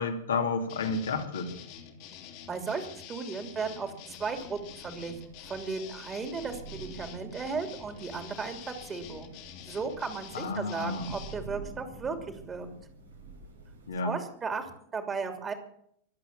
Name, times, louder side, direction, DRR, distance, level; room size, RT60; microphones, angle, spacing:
voice 1, 0.0-1.5 10.3-11.1 13.9-14.2, left 4 dB, 65° left, 3 dB, 2.7 m, -31 dB
sound 1, 0.7-11.4, left 8 dB, 45° left, 2.7 m, -47 dB
voice 2, 2.5-9.3 9.7-12.1 12.5-12.7 14.0-15.5, right 5 dB, 20° right, 6 dB, 3.1 m, -35 dB
Thunder / Rain, 4.3-14.0, right 3 dB, 70° right, 4.0 m, -48 dB
23.0 x 8.4 x 7.4 m, 0.68 s
figure-of-eight pair, 90°, 0 cm